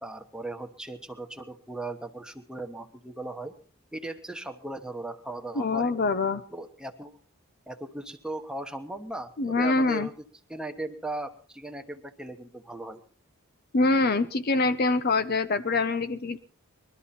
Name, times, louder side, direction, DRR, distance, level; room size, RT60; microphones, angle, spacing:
voice 1, 0.0-3.5 3.9-5.9 6.5-7.2 7.7-10.1 10.5-13.0, right 2 dB, 5° right, 5 dB, 1.1 m, -38 dB
voice 2, 5.6-6.4 9.4-10.1 13.7-16.4, left 3 dB, 45° left, 11 dB, 0.6 m, -24 dB
22.0 x 13.0 x 4.3 m, 0.43 s
head